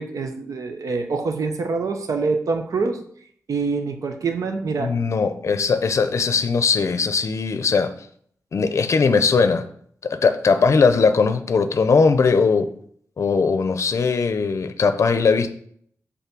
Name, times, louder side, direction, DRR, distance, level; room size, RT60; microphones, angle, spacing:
voice 1, 0.0-3.0 3.5-5.0, right 4 dB, 75° right, 6 dB, 0.9 m, -25 dB
voice 2, 4.8-7.9 8.5-9.7 10.0-12.7 13.2-15.5, left 5 dB, 55° left, 10 dB, 0.5 m, -19 dB
5.7 x 4.1 x 6.0 m, 0.63 s
wide cardioid pair, 140°, 6 cm